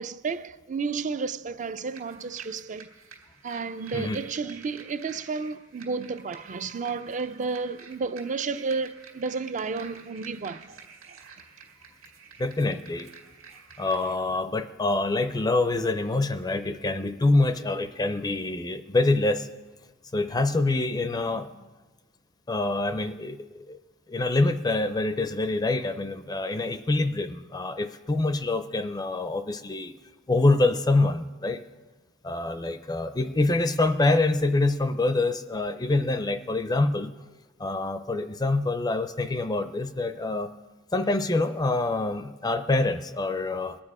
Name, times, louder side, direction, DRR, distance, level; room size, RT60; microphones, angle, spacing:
voice 1, 0.0-2.9 3.4-10.7, right 4 dB, 35° right, 0.4 m, -32 dB
sound 1, 1.9-14.2, right 6 dB, 75° right, 2.0 m, -50 dB
voice 2, 12.4-13.1 13.8-19.5 20.1-21.6 22.5-23.8 24.1-29.9 30.3-31.6 32.2-37.1 37.6-40.5 40.9-43.8, left 2 dB, 20° left, 0.5 m, -25 dB
21.5 x 8.8 x 4.8 m
head